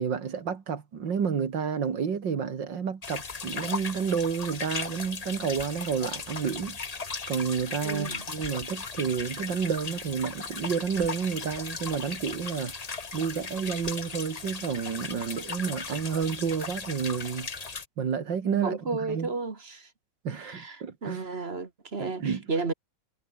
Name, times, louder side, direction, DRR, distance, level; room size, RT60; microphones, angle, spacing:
voice 1, 0.0-6.8 7.3-12.7 13.1-17.5 18.0-18.8 19.1-19.3 20.2-21.2 22.0-22.4, right 6 dB, 60° right, 2.7 m, -30 dB
sound 1, 3.0-17.8, left 4 dB, 35° left, 0.6 m, -37 dB
voice 2, 7.8-8.3 18.5-19.9 20.3-22.7, right 3 dB, 30° right, 1.8 m, -33 dB
omnidirectional pair, 2.3 m